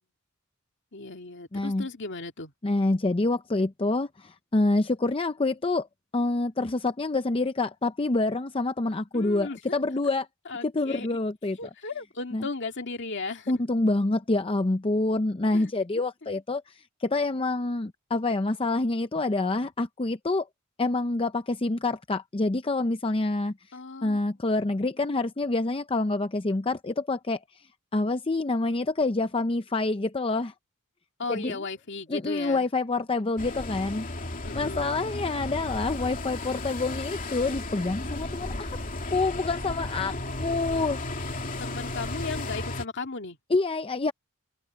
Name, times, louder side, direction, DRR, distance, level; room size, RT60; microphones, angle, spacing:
voice 1, 0.9-2.5 9.1-9.7 10.5-11.2 11.6-13.5 15.5-15.7 23.7-24.2 31.2-32.7 34.4-35.1 41.6-43.4, left 3 dB, 55° left, 2.2 m, -36 dB
voice 2, 1.5-1.9 2.6-5.9 6.1-10.3 10.6-11.6 12.3-12.5 13.5-20.5 20.8-23.5 24.0-27.4 27.9-30.5 31.3-31.6 32.1-38.8 39.1-41.0 43.5-44.1, left 2 dB, 25° left, 0.6 m, -27 dB
sound 1, 33.4-42.8, left 2 dB, 40° left, 2.7 m, -34 dB
open air
head